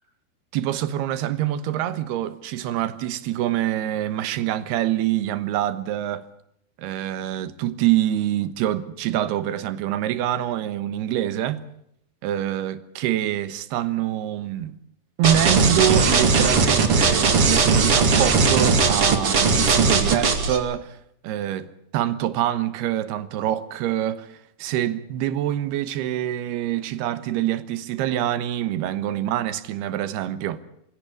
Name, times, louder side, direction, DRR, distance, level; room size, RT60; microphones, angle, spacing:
voice 1, 0.5-6.2 6.8-11.6 12.2-14.8 15.2-21.0 21.2-30.6, right 12 dB, 75° right, 3.2 m, -25 dB
sound 1, 15.2-20.6, right 4 dB, 40° right, 2.7 m, -18 dB
24.0 x 17.0 x 8.5 m
omnidirectional pair, 4.8 m